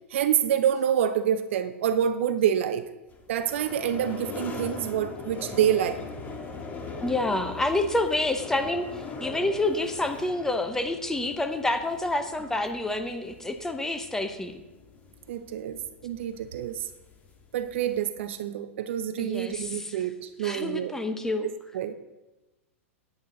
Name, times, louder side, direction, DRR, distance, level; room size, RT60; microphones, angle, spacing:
voice 1, 0.1-2.9 3.3-6.0 15.3-16.9 17.5-20.9 21.7-21.9, right 9 dB, 60° right, 0.7 m, -27 dB
sound 1, 3.1-18.0, left 4 dB, 20° left, 1.7 m, -41 dB
voice 2, 7.0-8.9 9.2-14.5 19.2-20.0 20.4-21.5, left 2 dB, 5° left, 1.0 m, -28 dB
9.4 x 9.2 x 4.0 m
hypercardioid pair, 105°, 7 cm